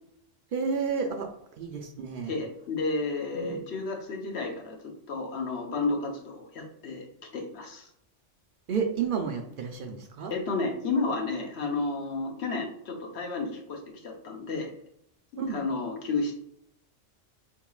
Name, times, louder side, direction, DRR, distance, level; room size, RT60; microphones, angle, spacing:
voice 1, 0.5-1.3 1.6-2.3 3.3-3.6 8.7-10.3 15.4-15.6, right 5 dB, 60° right, 4 dB, 0.6 m, -31 dB
voice 2, 2.3-4.8 5.1-7.0 7.3-7.9 10.3-14.7 15.5-16.4, left 3 dB, 60° left, 2 dB, 1.1 m, -31 dB
4.6 x 3.7 x 2.3 m, 0.72 s
omnidirectional pair, 1.3 m